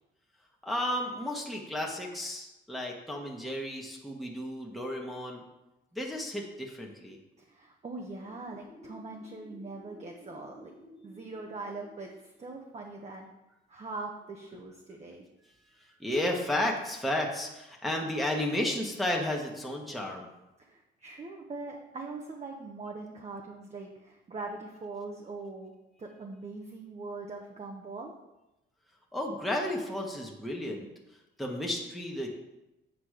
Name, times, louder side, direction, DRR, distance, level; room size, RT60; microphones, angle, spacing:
voice 1, 0.6-5.4 5.9-7.2 8.7-9.0 9.4-11.3 16.0-20.3 29.1-30.9 31.4-32.3, left 1 dB, ahead, -1 dB, 1.4 m, -33 dB
voice 2, 7.4-10.7 11.0-13.3 13.7-15.3 20.6-25.7 26.0-28.1, right 3 dB, 35° right, 0 dB, 1.0 m, -42 dB
8.2 x 5.1 x 5.0 m, 0.96 s
cardioid pair, 90°, 20 cm